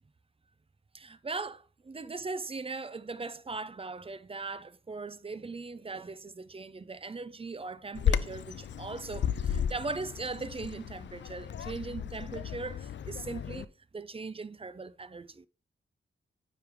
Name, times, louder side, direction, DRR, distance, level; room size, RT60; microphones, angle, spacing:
voice 1, 0.9-15.5, right 3 dB, 25° right, 0.5 m, -39 dB
Bird vocalization bird call bird song, 8.0-13.6, left 8 dB, 60° left, 0.4 m, -34 dB
9.4 x 3.3 x 3.5 m
cardioid pair, 50°, 21 cm